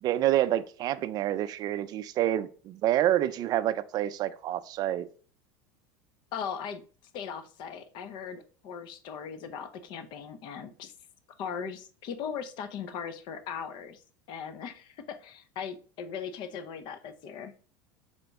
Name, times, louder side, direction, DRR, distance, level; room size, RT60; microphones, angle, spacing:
voice 1, 0.0-5.1, right 13 dB, 40° right, 0.4 m, -28 dB
voice 2, 6.3-6.8 7.1-10.9 11.4-14.0 14.3-17.5, left 7 dB, 50° left, 0.6 m, -39 dB
4.2 x 2.9 x 3.4 m
supercardioid pair, 110°, 10 cm